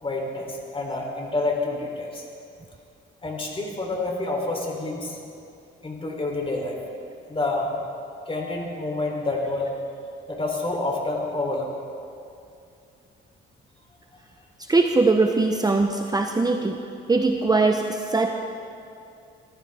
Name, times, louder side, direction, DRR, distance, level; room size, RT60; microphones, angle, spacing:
voice 1, 0.0-2.2 3.2-5.2 5.8-6.8 7.3-7.7 8.3-9.7 10.3-11.8, left 2 dB, 25° left, 0 dB, 3.4 m, -28 dB
voice 2, 14.7-16.8 17.1-18.4, right 3 dB, 20° right, 4 dB, 0.9 m, -21 dB
23.0 x 14.5 x 3.6 m, 2.5 s
cardioid pair, 90°, 20 cm